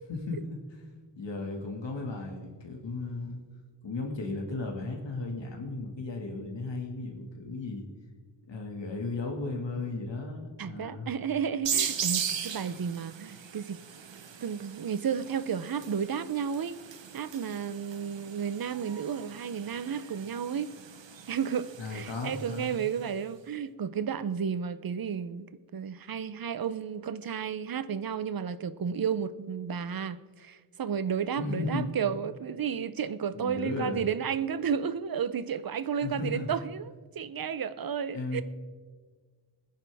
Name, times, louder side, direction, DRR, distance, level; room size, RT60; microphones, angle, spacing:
voice 1, 0.1-0.6 1.2-3.4 3.8-7.9 8.5-11.1 21.8-22.8 31.4-31.9 33.4-34.1 36.0-36.5 38.1-38.4, left 3 dB, 75° left, 2.0 m, -35 dB
voice 2, 10.6-13.9 14.4-16.8 17.1-20.7 21.3-38.4, right 7 dB, 55° right, 0.6 m, -32 dB
sound 1, 11.6-23.0, right 7 dB, 80° right, 1.0 m, -38 dB
21.0 x 10.0 x 3.5 m
wide cardioid pair, 125°, 44 cm